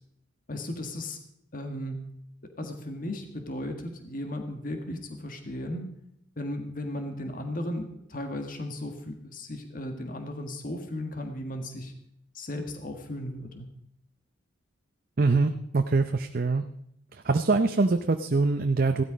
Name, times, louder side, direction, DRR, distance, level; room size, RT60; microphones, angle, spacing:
voice 1, 0.5-1.2 1.5-2.1 2.4-5.9 6.4-11.9 12.3-13.6, left 1 dB, 45° left, 5 dB, 1.6 m, -35 dB
voice 2, 15.2-16.6 17.1-19.0, right 3 dB, 45° right, 7 dB, 0.6 m, -24 dB
16.0 x 12.5 x 5.1 m, 0.74 s
head